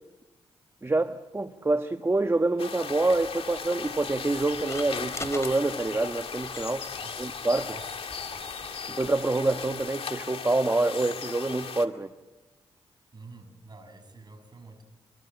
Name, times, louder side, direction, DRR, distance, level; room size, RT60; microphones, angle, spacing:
voice 1, 0.8-6.9 7.2-7.7 8.9-12.1, right 2 dB, 25° right, 8 dB, 1.3 m, -26 dB
sound 1, 2.6-11.9, left 6 dB, 65° left, 2.2 m, -37 dB
sound 2, 3.1-9.9, left 2 dB, 30° left, 3.9 m, -46 dB
voice 2, 6.9-7.3 7.6-8.8 13.1-14.8, right 3 dB, 45° right, 9 dB, 6.4 m, -48 dB
25.0 x 22.5 x 9.0 m, 1.1 s
supercardioid pair, 50°, 10 cm